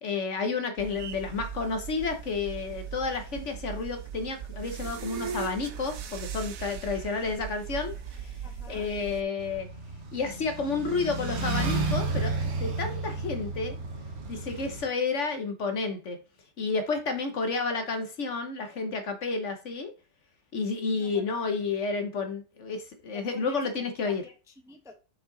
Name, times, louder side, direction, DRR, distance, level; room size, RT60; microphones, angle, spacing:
voice 1, 0.0-9.7 10.1-12.3 12.6-13.8 14.3-16.2 16.6-19.9 20.5-24.2, left 4 dB, 55° left, 1.1 m, -31 dB
sound 1, 0.8-9.2, right 7 dB, 65° right, 1.1 m, -39 dB
voice 2, 8.4-8.9 20.9-21.4 23.1-23.7 24.0-24.9, left 2 dB, 5° right, 0.6 m, -50 dB
sound 2, 9.4-14.8, right 3 dB, 45° right, 1.2 m, -32 dB
5.7 x 5.3 x 3.8 m
omnidirectional pair, 1.7 m